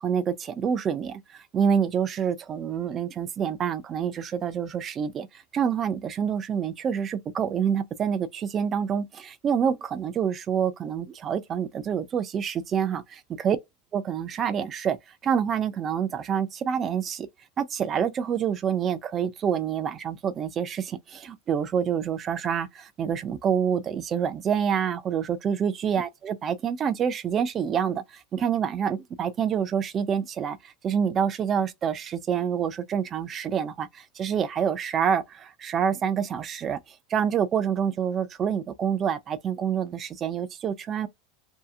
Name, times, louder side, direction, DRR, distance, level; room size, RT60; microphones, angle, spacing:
voice 1, 0.0-13.6 13.9-15.0 15.2-17.3 17.6-36.8 37.1-41.1, right 8 dB, 20° right, 0.3 m, -27 dB
2.7 x 2.3 x 2.4 m
supercardioid pair, 170°, 0 cm